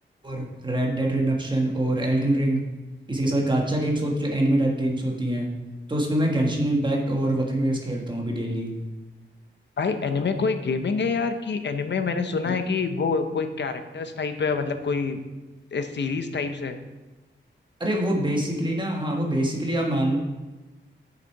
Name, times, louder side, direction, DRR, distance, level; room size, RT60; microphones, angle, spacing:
voice 1, 0.2-2.6 3.1-5.5 5.9-8.7 12.5-12.6 17.8-20.2, right 1 dB, 25° right, -1 dB, 1.5 m, -24 dB
voice 2, 9.8-15.2 15.7-16.8, left 4 dB, 65° left, 8 dB, 0.7 m, -26 dB
7.9 x 6.9 x 4.7 m, 1.2 s
wide cardioid pair, 140°, 20 cm